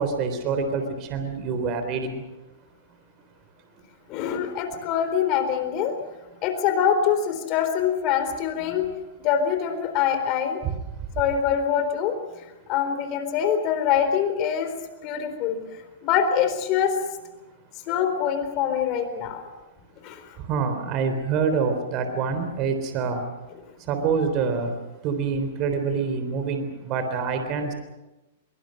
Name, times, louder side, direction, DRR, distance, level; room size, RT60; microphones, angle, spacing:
voice 1, 0.0-2.2 8.7-8.8 10.6-10.7 20.4-23.2 23.9-24.7 25.0-27.7, right 5 dB, 35° right, 7 dB, 3.6 m, -26 dB
voice 2, 4.1-6.0 6.4-8.9 9.2-10.6 11.2-12.1 12.7-14.7 15.0-15.6 16.0-17.0 17.9-19.5 20.0-20.2, left 8 dB, 40° left, 8 dB, 4.0 m, -24 dB
24.0 x 23.5 x 6.5 m, 1.1 s
hypercardioid pair, 145°, 0 cm